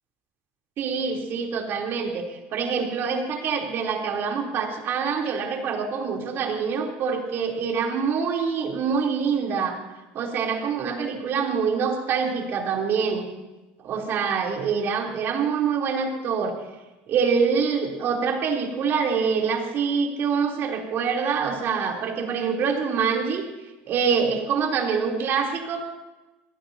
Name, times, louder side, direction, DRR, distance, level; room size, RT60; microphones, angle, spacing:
voice 1, 0.8-9.8 10.1-13.3 13.8-16.6 17.1-23.4 23.9-25.9, right 6 dB, 50° right, 1 dB, 3.3 m, -25 dB
25.0 x 18.0 x 2.8 m, 1.1 s
supercardioid pair, 95°, 5 cm